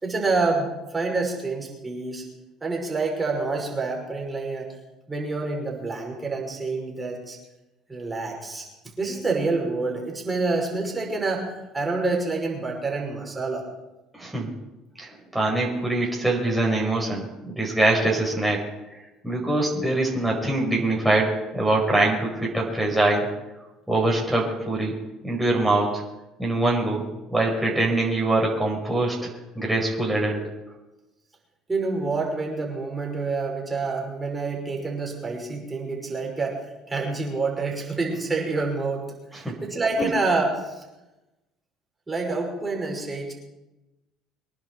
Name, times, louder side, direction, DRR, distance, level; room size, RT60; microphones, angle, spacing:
voice 1, 0.0-2.2 2.6-4.7 5.1-7.4 7.9-8.7 9.0-11.5 11.7-13.7 31.7-36.6 36.9-39.1 39.3-40.8 42.1-43.3, right 3 dB, 20° right, -1 dB, 5.2 m, -27 dB
voice 2, 14.1-14.5 15.0-18.6 19.2-23.3 23.9-24.9 25.2-26.0 26.4-27.0 27.3-29.3 29.5-30.4 39.3-39.5 40.0-40.1, right 2 dB, 5° right, -3 dB, 5.0 m, -23 dB
24.0 x 10.5 x 4.6 m, 1.0 s
hypercardioid pair, 65°, 0 cm